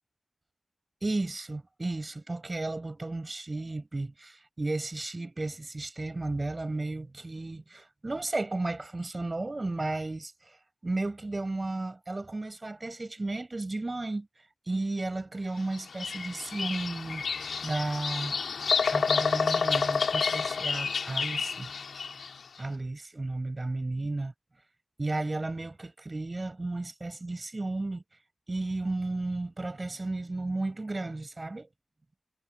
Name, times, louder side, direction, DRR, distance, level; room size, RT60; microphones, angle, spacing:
voice 1, 1.0-10.6 10.8-14.3 14.7-18.4 18.8-21.7 22.6-24.3 25.0-28.0 28.5-31.7, right 2 dB, 35° right, 7.0 m, -34 dB
Bird vocalization bird call bird song, 15.7-22.4, left 5 dB, 90° left, 4.1 m, -29 dB
cardioid pair, 60°, 0 cm